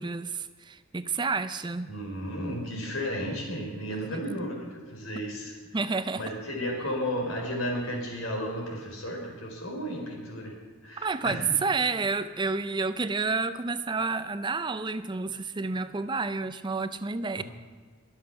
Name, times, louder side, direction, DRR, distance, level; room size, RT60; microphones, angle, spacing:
voice 1, 0.0-1.9 4.1-4.2 5.7-6.2 11.0-17.4, right 4 dB, 20° right, 12 dB, 0.5 m, -30 dB
voice 2, 1.9-5.6 6.2-11.4 17.4-17.5, equal, 80° left, 1 dB, 4.2 m, -33 dB
22.5 x 7.5 x 5.8 m, 1.5 s
head